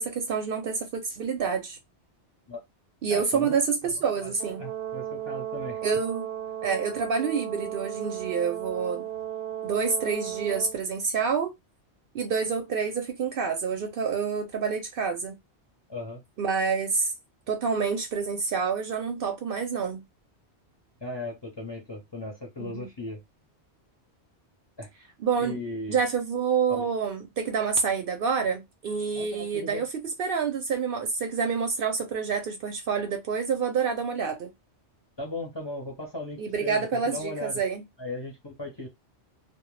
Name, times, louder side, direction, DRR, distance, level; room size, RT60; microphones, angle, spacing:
voice 1, 0.0-1.8 3.0-4.6 5.8-6.3 6.6-9.1 9.6-11.5 12.1-15.4 16.4-17.1 17.5-20.0 22.6-22.9 25.2-25.6 25.9-29.9 30.2-34.5 36.4-37.8, right 5 dB, 60° right, 0.7 m, -28 dB
voice 2, 3.1-3.6 3.8-4.3 4.6-5.8 15.9-16.2 21.0-23.2 24.8-24.9 25.4-26.0 26.7-26.9 29.1-29.9 35.2-37.6 38.0-38.9, left 2 dB, 30° left, 0.6 m, -37 dB
Brass instrument, 4.4-10.8, right 11 dB, 90° right, 0.9 m, -35 dB
2.1 x 2.0 x 3.0 m
omnidirectional pair, 1.2 m